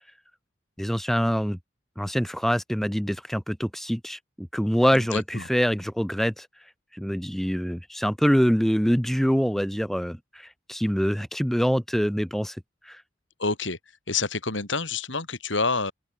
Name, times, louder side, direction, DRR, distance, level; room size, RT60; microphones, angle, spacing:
voice 1, 0.8-1.6 2.0-6.5 6.9-12.6 12.8-13.0, equal, ahead, 1.2 m, -25 dB
voice 2, 4.9-5.5 13.4-13.8 14.1-15.9, left 4 dB, 75° left, 5.1 m, -28 dB
open air
head